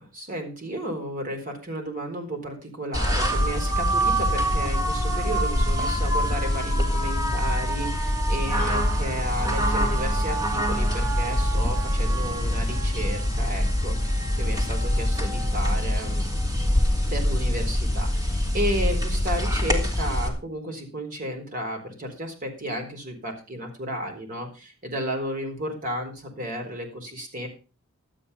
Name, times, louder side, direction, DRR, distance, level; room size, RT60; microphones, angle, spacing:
voice 1, 0.0-16.3 17.1-27.5, equal, 40° right, 3 dB, 4.0 m, -33 dB
sound 1, 2.9-20.3, equal, 15° right, 2.5 m, -24 dB
12.0 x 9.0 x 5.5 m, 0.32 s
head